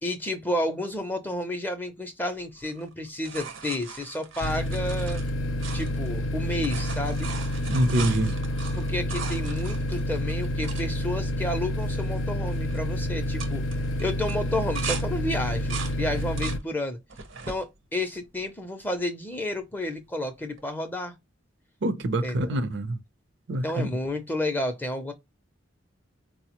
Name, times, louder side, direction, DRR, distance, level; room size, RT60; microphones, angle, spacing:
voice 1, 0.0-5.2 5.7-7.3 8.7-13.6 14.0-17.0 17.5-21.1 22.2-22.5 23.6-25.1, left 1 dB, 10° left, 0.5 m, -31 dB
sound 1, 2.6-6.2 6.5-10.9 11.4-11.5 11.7-12.2 12.5-12.8 13.2-15.0 15.4-16.6 17.1-17.6 18.2-19.0 20.6-20.7, right 6 dB, 80° right, 0.9 m, -39 dB
sound 2, 4.4-16.6, left 1 dB, 80° left, 0.6 m, -29 dB
voice 2, 7.7-8.4 21.8-23.0 23.5-24.0, right 1 dB, 65° right, 0.6 m, -25 dB
4.2 x 2.0 x 2.9 m
head